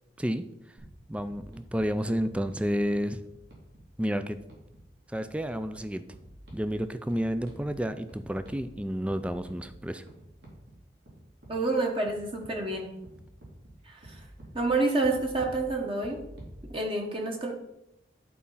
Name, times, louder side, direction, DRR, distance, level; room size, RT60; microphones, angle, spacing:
sound 1, 0.8-16.6, right 1 dB, 70° right, 3.0 m, -51 dB
voice 1, 1.1-3.2 4.0-4.4 5.1-6.1 6.5-10.0, equal, 5° right, 11 dB, 0.4 m, -30 dB
voice 2, 11.5-12.9 13.8-14.2 14.5-16.2 16.7-17.5, right 2 dB, 30° right, 1 dB, 1.1 m, -28 dB
11.0 x 4.2 x 5.6 m, 0.85 s
head